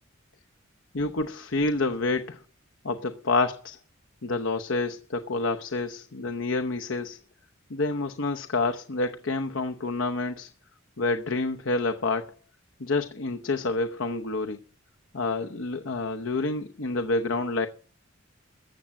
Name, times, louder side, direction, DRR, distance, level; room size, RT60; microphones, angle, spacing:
voice 1, 0.9-2.4 2.8-3.8 4.2-7.2 7.7-10.5 11.0-12.3 12.8-14.6 15.1-17.7, left 3 dB, 75° left, 6 dB, 0.9 m, -28 dB
14.5 x 7.5 x 8.9 m, 0.42 s
head